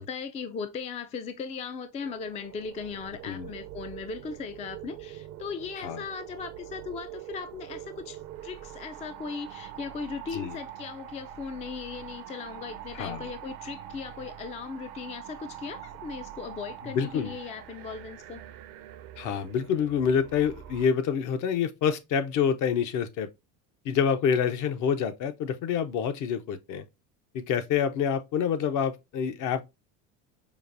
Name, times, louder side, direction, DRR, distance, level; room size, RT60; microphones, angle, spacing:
voice 1, 0.0-18.4, left 5 dB, 20° left, 0.3 m, -38 dB
sound 1, 2.0-20.9, right 11 dB, 60° right, 0.6 m, -44 dB
voice 2, 12.9-13.3 16.8-17.3 19.2-23.3 23.8-26.8 27.3-29.6, left 7 dB, 55° left, 0.8 m, -27 dB
5.0 x 2.5 x 2.5 m
supercardioid pair, 95°, 36 cm